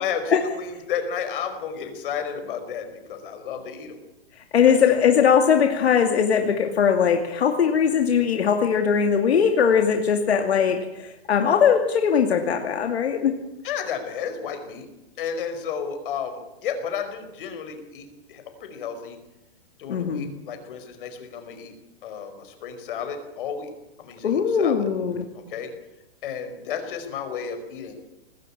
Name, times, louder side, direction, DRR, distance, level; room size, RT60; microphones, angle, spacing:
voice 1, 0.0-4.0 4.6-5.0 13.6-14.8 15.2-19.2 19.8-21.7 22.0-23.7 24.0-24.8 25.3-25.7 26.2-28.0, left 7 dB, 55° left, 7 dB, 5.0 m, -32 dB
voice 2, 4.5-13.3 19.9-20.3 24.2-25.2, left 7 dB, 90° left, 4 dB, 2.5 m, -20 dB
19.5 x 16.0 x 8.7 m, 0.95 s
hypercardioid pair, 160°, 31 cm